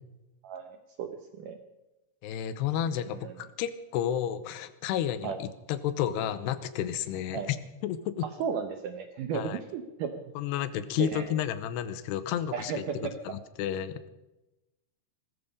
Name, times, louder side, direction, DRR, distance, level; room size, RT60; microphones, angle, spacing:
voice 1, 0.4-1.6 3.2-3.3 5.2-5.4 7.3-7.5 8.4-10.1 11.0-11.3 12.5-13.1, right 7 dB, 75° right, 7 dB, 2.0 m, -34 dB
voice 2, 2.2-7.6 7.8-8.3 9.3-9.6 10.4-12.8 13.2-14.0, left 10 dB, 90° left, 13 dB, 2.9 m, -31 dB
19.0 x 14.5 x 5.4 m, 1.0 s
omnidirectional pair, 4.7 m